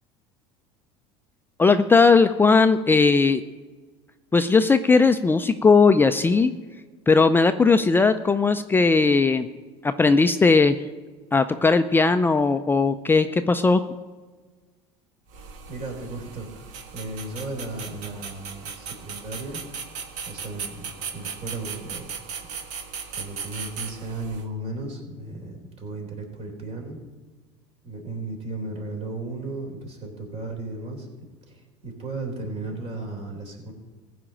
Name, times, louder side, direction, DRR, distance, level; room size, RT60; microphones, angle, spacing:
voice 1, 1.6-3.4 4.3-6.5 7.1-9.5 9.8-10.8 11.3-13.8, left 4 dB, 15° left, 9 dB, 0.4 m, -18 dB
sound 1, 15.3-24.5, right 6 dB, 60° right, 1.5 m, -37 dB
voice 2, 15.7-19.6 20.2-22.1 23.1-27.0 27.8-31.1 31.5-33.7, right 2 dB, 45° right, 2 dB, 3.7 m, -35 dB
15.0 x 5.1 x 8.7 m, 1.4 s
supercardioid pair, 100°, 14 cm